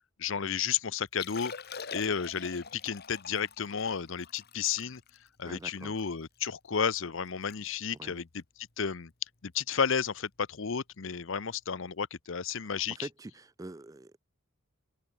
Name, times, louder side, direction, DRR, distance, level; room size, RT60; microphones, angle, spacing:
voice 1, 0.2-1.5 1.9-5.0 5.4-8.4 8.8-9.1 9.4-13.1, left 6 dB, 65° left, 0.7 m, -32 dB
Liquid, 1.1-6.5 6.9-7.0 7.3-7.6 7.8-8.1 8.7-8.9 10.4-10.5, left 6 dB, 50° left, 1.9 m, -45 dB
voice 2, 5.4-6.0 8.0-8.2 12.6-14.2, right 2 dB, 15° right, 0.4 m, -45 dB
open air
head